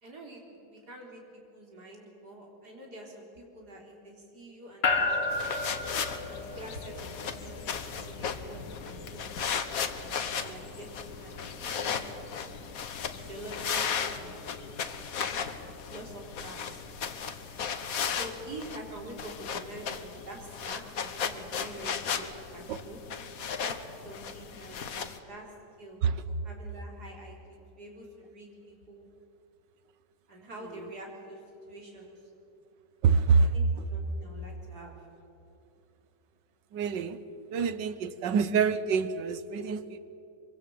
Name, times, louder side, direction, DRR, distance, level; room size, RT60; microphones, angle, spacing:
voice 1, 0.0-1.2 1.5-5.5 6.3-8.6 8.8-10.9 11.2-12.2 13.1-14.3 15.8-16.6 18.0-23.0 23.6-25.5 25.8-29.1 30.3-31.4 31.7-32.1 33.5-35.0, right 1 dB, 65° right, 0 dB, 4.5 m, -46 dB
sound 1, 4.8-19.1, left 3 dB, 80° left, 2.0 m, -38 dB
sound 2, 5.3-25.2, left 7 dB, 55° left, 1.5 m, -36 dB
voice 2, 33.0-33.9 36.7-37.2 37.5-40.0, right 5 dB, 85° right, 13 dB, 1.6 m, -26 dB
24.0 x 24.0 x 7.8 m, 2.8 s
omnidirectional pair, 1.9 m